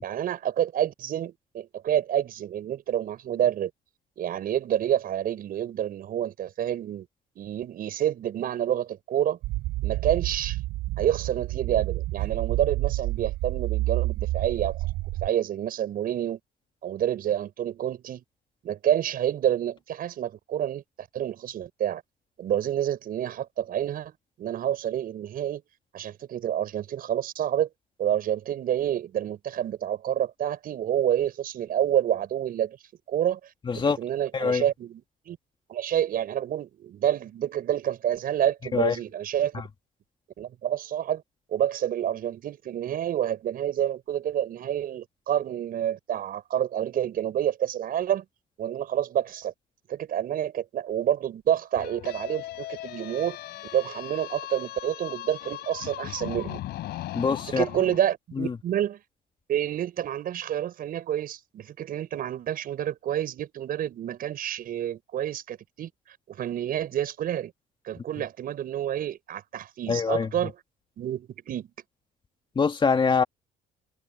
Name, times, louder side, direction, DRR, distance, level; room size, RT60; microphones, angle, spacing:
voice 1, 0.0-3.7 4.2-7.1 7.4-9.4 9.8-10.6 11.0-14.9 15.2-16.4 16.8-18.2 18.6-22.0 22.4-24.1 24.4-25.6 25.9-27.7 28.0-32.8 33.1-33.4 33.7-35.0 35.3-35.4 35.7-39.6 40.4-41.2 41.5-48.2 48.6-49.5 49.9-53.4 53.7-56.6 57.5-59.0 59.5-65.9 66.3-67.5 67.8-70.6 71.0-71.7, right 10 dB, 60° right, 6.4 m, -28 dB
sound 1, 9.4-15.3, right 18 dB, 90° right, 4.7 m, -29 dB
voice 2, 33.7-34.0 34.3-34.6 38.7-39.0 39.5-39.6 57.1-57.6 58.4-58.5 69.9-70.3 72.6-73.2, left 5 dB, 30° left, 2.2 m, -24 dB
sound 2, 51.8-58.0, left 15 dB, 80° left, 3.6 m, -38 dB
cardioid pair, 110°, 17 cm